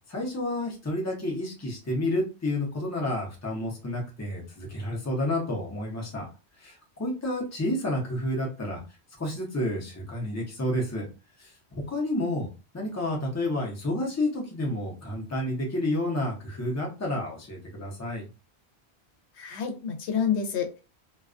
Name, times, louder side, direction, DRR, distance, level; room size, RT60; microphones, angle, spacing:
voice 1, 0.1-6.3 6.6-8.8 9.2-11.1 11.4-12.5 12.7-18.2, left 1 dB, 20° left, -1 dB, 0.6 m, -30 dB
voice 2, 19.4-20.8, left 7 dB, 85° left, 5 dB, 0.9 m, -28 dB
2.3 x 2.2 x 2.4 m, 0.30 s
omnidirectional pair, 1.1 m